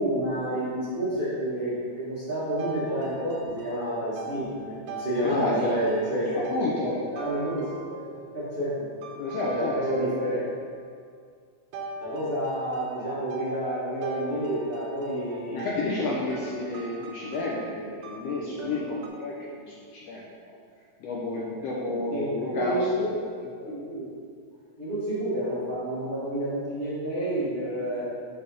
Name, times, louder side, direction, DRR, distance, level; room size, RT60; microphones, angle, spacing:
voice 1, 0.0-6.4 7.1-8.8 9.5-10.4 12.0-15.7 22.1-24.0 24.8-28.1, right 1 dB, 70° right, -12 dB, 0.5 m, -29 dB
sound 1, 2.6-8.4 9.0-10.7 11.7-19.1, right 2 dB, 85° right, 2.2 m, -41 dB
voice 2, 5.2-5.9 6.3-7.1 9.1-10.5 15.5-20.6 21.0-23.2, left 2 dB, 75° left, -4 dB, 1.5 m, -31 dB
5.5 x 3.5 x 5.3 m, 2.1 s
omnidirectional pair, 3.5 m